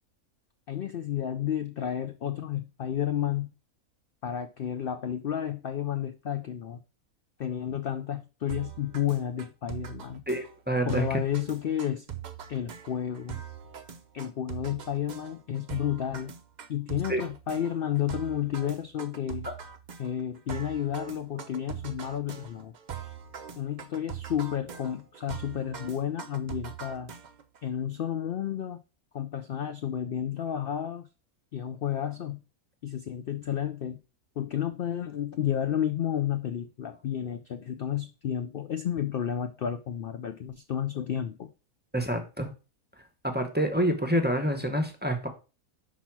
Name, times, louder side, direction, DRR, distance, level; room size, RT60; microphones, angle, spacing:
voice 1, 0.7-3.5 4.2-6.8 7.4-10.2 10.8-12.1 12.5-13.4 14.1-16.3 16.7-19.5 20.0-22.7 23.6-27.1 27.6-28.8 29.1-31.1 31.5-32.4 32.8-34.0 34.4-41.5, left 10 dB, 75° left, 9 dB, 0.5 m, -31 dB
sound 1, 8.5-27.6, right 9 dB, 55° right, 0.5 m, -42 dB
voice 2, 10.3-11.2 17.1-17.2 19.4-19.5 41.9-42.5 43.3-45.3, right 1 dB, 10° right, 5 dB, 0.7 m, -27 dB
5.8 x 4.1 x 5.9 m, 0.32 s
omnidirectional pair, 1.5 m